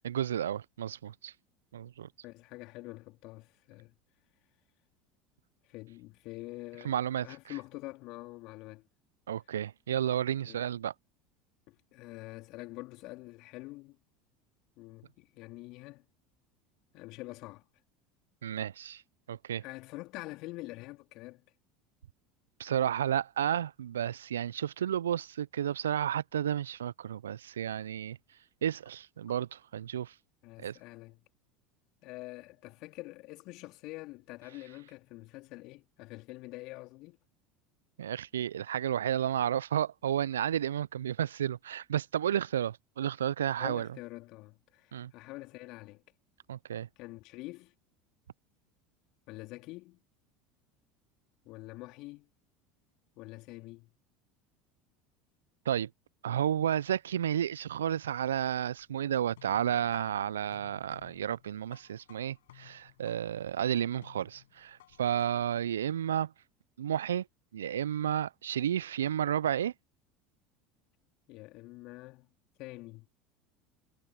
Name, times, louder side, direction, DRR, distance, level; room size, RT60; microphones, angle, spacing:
voice 1, 0.0-1.3 1.7-2.1 6.8-7.3 9.3-10.9 18.4-19.0 19.3-19.6 22.6-28.2 28.6-30.1 30.6-30.8 38.0-43.9 44.9-45.1 46.5-46.9 55.7-55.9 56.2-66.3 66.8-67.2 67.5-69.7, right 10 dB, 75° right, 0.8 m, -32 dB
voice 2, 2.2-3.9 5.6-8.9 10.4-10.6 11.7-14.0 14.8-16.1 16.9-17.6 19.6-21.5 30.4-31.2 32.0-37.2 43.6-46.0 47.0-47.7 49.3-50.0 51.4-52.3 53.2-53.9 71.3-72.3 72.6-73.1, left 21 dB, 55° left, 3.0 m, -46 dB
sound 1, 58.8-65.6, left 14 dB, 70° left, 6.8 m, -59 dB
figure-of-eight pair, 70°, 0 cm